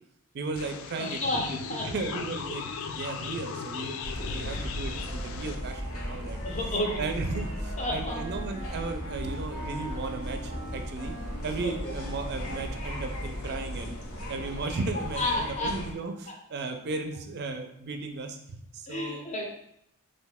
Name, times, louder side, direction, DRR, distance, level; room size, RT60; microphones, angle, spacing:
voice 1, 0.3-6.4 7.0-11.1 11.4-14.0 14.3-19.2, right 3 dB, 50° right, 6 dB, 0.4 m, -35 dB
sound 1, 0.6-5.6, left 6 dB, 65° left, 0.3 m, -37 dB
voice 2, 1.0-1.4 1.7-1.9 4.3-4.5 6.4-7.1 7.8-8.2 11.6-11.9 15.1-15.7 18.9-19.4, left 1 dB, 35° left, 0 dB, 0.6 m, -31 dB
sound 2, 4.0-15.9, equal, 80° left, 0.8 m, -36 dB
Wind instrument woodwind instrument, 6.1-13.3, right 2 dB, 10° right, 0.7 m, -45 dB
3.1 x 2.6 x 3.5 m, 0.75 s
head